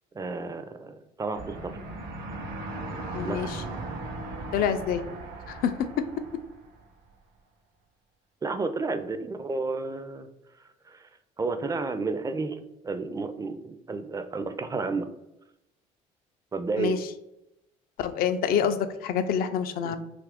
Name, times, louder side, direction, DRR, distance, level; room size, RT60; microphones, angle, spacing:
voice 1, 0.1-1.8 3.2-3.5 8.4-10.3 10.9-11.1 11.4-15.1 16.5-17.0 19.8-20.0, right 3 dB, 20° right, 9 dB, 0.4 m, -31 dB
sound 1, 1.3-6.9, right 2 dB, 70° right, 0.7 m, -38 dB
voice 2, 3.1-3.6 4.5-5.0 5.5-5.7 16.8-17.0 18.0-20.0, left 8 dB, 65° left, 10 dB, 0.4 m, -27 dB
2.7 x 2.5 x 3.4 m, 0.88 s
supercardioid pair, 70°, 17 cm